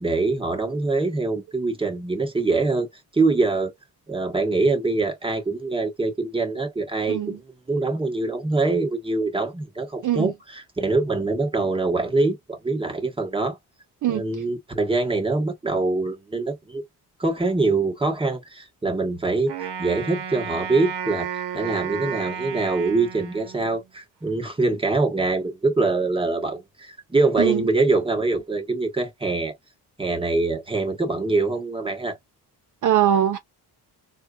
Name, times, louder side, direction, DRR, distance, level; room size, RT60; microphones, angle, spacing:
voice 1, 0.0-3.7 4.1-7.4 7.7-13.6 14.1-16.8 17.2-19.5 19.8-29.6 30.0-32.2, right 3 dB, 15° right, 1.1 m, -24 dB
voice 2, 7.1-7.4 10.0-10.3 14.0-14.4 27.4-27.7 32.8-33.4, right 10 dB, 50° right, 0.5 m, -22 dB
Wind instrument woodwind instrument, 19.5-23.9, right 8 dB, 85° right, 0.9 m, -33 dB
4.1 x 2.4 x 2.3 m
cardioid pair, 135°, 40 cm